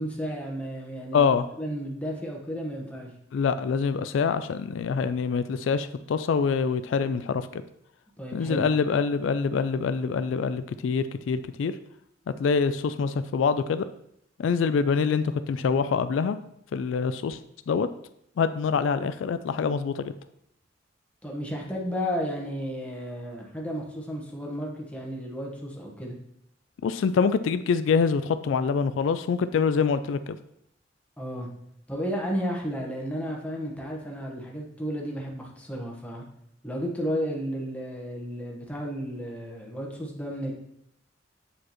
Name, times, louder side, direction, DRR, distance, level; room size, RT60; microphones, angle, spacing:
voice 1, 0.0-1.3 1.6-3.1 8.2-8.7 21.2-26.2 31.2-31.5 31.9-36.2 36.6-40.5, equal, 5° left, -2 dB, 1.2 m, -33 dB
voice 2, 1.1-1.5 3.3-7.6 8.3-11.7 12.4-13.9 14.4-16.4 16.7-17.4 17.7-17.9 18.4-20.1 26.8-30.4, left 5 dB, 80° left, 12 dB, 0.3 m, -25 dB
8.3 x 4.9 x 3.0 m, 0.75 s
head